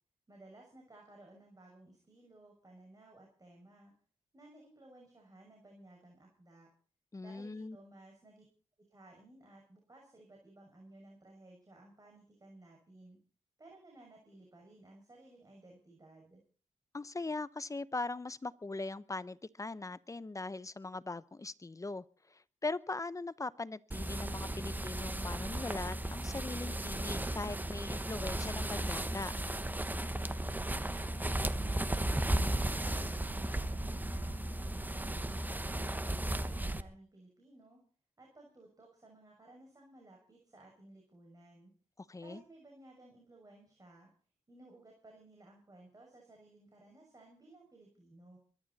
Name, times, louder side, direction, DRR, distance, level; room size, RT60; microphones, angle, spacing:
voice 1, 0.3-3.9 4.3-6.7 7.2-8.4 8.9-13.2 13.6-16.4 30.5-34.4 34.8-37.8 38.2-41.7 42.2-44.1 44.5-48.4, right 2 dB, 30° right, 0 dB, 6.4 m, -58 dB
voice 2, 7.1-7.8 16.9-29.3 42.0-42.4, left 3 dB, 25° left, 16 dB, 0.9 m, -40 dB
sound 1, 23.9-36.8, right 1 dB, 15° right, 1.2 m, -35 dB
23.0 x 12.0 x 4.2 m, 0.41 s
cardioid pair, 75°, 13 cm